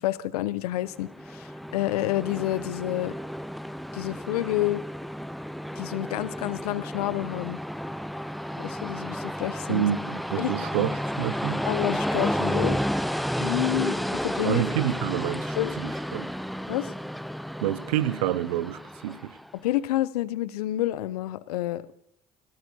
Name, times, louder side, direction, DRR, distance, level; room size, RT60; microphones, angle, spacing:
voice 1, 0.0-3.1 3.9-4.8 5.8-7.6 8.6-9.9 10.4-10.9 11.6-12.8 13.4-14.6 15.6-15.7 16.7-16.9 19.6-22.0, left 15 dB, 80° left, 0.6 m, -29 dB
Train, 0.9-19.5, equal, ahead, 0.4 m, -32 dB
voice 2, 9.7-11.6 14.4-16.3 17.6-19.4, right 12 dB, 80° right, 0.5 m, -28 dB
19.5 x 17.5 x 2.8 m
hypercardioid pair, 60°, 19 cm